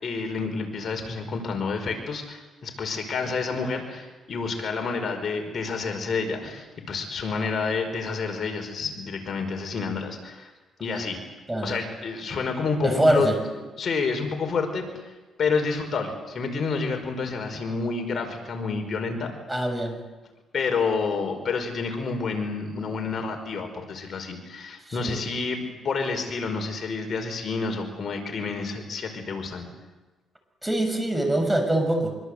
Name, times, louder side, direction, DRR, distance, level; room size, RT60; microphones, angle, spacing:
voice 1, 0.0-10.5 10.8-11.2 11.6-13.3 13.8-14.9 15.4-19.3 20.5-29.7, left 4 dB, 50° left, 4 dB, 5.2 m, -29 dB
voice 2, 12.8-13.4 19.5-20.0 24.9-25.2 30.6-32.1, right 1 dB, 10° right, 6 dB, 6.4 m, -24 dB
25.5 x 24.5 x 8.1 m, 1.2 s
cardioid pair, 90°, 0 cm